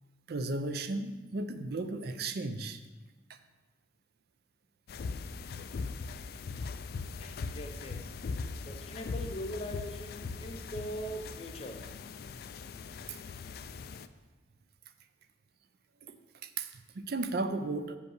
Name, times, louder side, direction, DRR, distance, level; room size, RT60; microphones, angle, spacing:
voice 1, 0.3-2.8 3.3-3.4 13.1-13.2 16.0-16.2 16.4-18.0, right 2 dB, 60° right, 10 dB, 0.5 m, -35 dB
sound 1, 4.9-14.1, left 4 dB, 55° left, 0.3 m, -40 dB
voice 2, 7.2-8.1 8.6-11.9, equal, 35° left, 5 dB, 0.7 m, -41 dB
6.6 x 5.4 x 6.4 m, 1.2 s
head